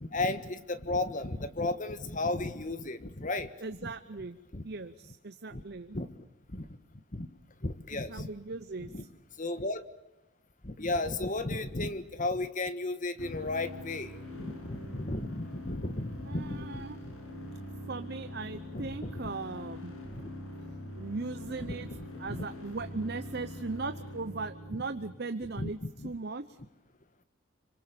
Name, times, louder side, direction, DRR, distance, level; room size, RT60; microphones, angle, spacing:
voice 1, 0.0-3.5 3.8-3.9 4.5-4.6 5.5-5.6 5.9-6.1 6.5-6.7 7.1-7.3 7.6-8.3 8.8-9.0 9.4-9.8 10.6-16.8 18.7-19.1 20.1-20.3 21.8-22.5 25.6-25.7 26.0-26.1, left 2 dB, 40° left, 12 dB, 1.5 m, -34 dB
voice 2, 3.6-4.4 4.6-6.0 7.9-8.9 16.3-17.0 17.9-19.9 21.0-21.9 22.2-25.8 26.0-26.6, right 3 dB, 50° right, 11 dB, 0.8 m, -38 dB
sound 1, 13.2-25.2, left 1 dB, 70° left, 7.6 m, -43 dB
27.0 x 24.5 x 7.0 m, 0.99 s
head